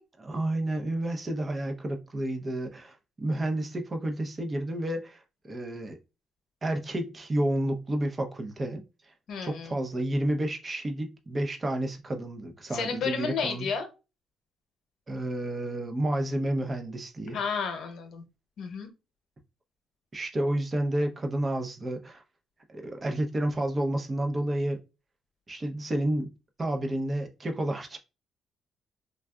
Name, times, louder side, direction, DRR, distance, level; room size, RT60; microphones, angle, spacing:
voice 1, 0.2-6.0 6.6-9.1 9.4-13.7 15.1-17.4 20.1-22.2 22.7-24.8 25.5-26.3 26.6-28.0, right 1 dB, 30° right, 0.7 m, -30 dB
voice 2, 9.3-9.8 12.7-13.9 17.3-18.2 18.6-18.9, left 5 dB, 70° left, 0.9 m, -32 dB
3.3 x 2.4 x 2.3 m
cardioid pair, 90°, 0 cm